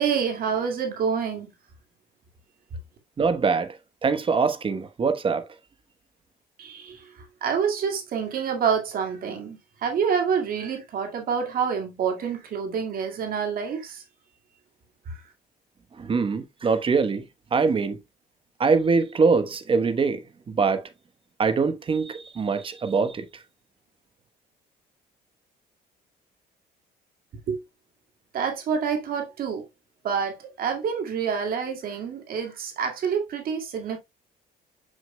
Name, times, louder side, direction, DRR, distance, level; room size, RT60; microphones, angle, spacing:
voice 1, 0.0-1.5 6.6-7.1 7.4-14.0 15.1-15.2 27.5-27.6 28.3-29.6 30.0-34.0, right 6 dB, 60° right, 2.0 m, -27 dB
voice 2, 3.2-3.7 4.0-5.4 16.0-17.2 17.5-18.0 18.6-20.2 20.5-20.8 21.4-23.3, right 4 dB, 30° right, 1.0 m, -23 dB
7.1 x 6.3 x 2.2 m
cardioid pair, 110°, 17 cm